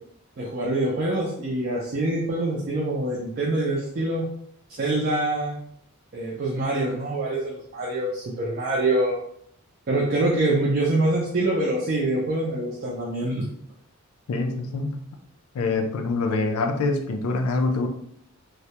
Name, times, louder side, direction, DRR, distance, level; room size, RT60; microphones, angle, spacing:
voice 1, 0.4-4.2 4.8-5.6 6.1-9.2 9.9-13.4, right 2 dB, 45° right, -5 dB, 0.4 m, -25 dB
voice 2, 14.3-15.0 15.5-17.9, left 3 dB, 80° left, 5 dB, 0.4 m, -25 dB
2.2 x 2.0 x 2.7 m, 0.68 s
head